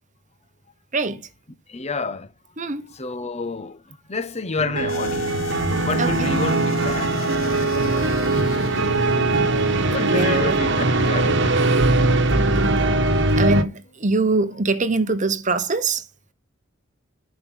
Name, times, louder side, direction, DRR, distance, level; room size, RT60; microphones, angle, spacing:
voice 1, 0.9-1.3 2.6-2.9 6.0-6.3 7.4-7.7 9.3-9.5 10.0-10.6 13.4-16.0, right 3 dB, 40° right, 1.0 m, -23 dB
voice 2, 1.7-2.3 2.9-5.5 5.8-7.3 9.9-11.8, left 3 dB, 35° left, 0.9 m, -30 dB
sound 1, 4.6-13.6, right 2 dB, 65° right, 1.3 m, -20 dB
sound 2, 4.9-13.4, left 3 dB, 85° left, 1.0 m, -36 dB
11.5 x 5.3 x 6.4 m
head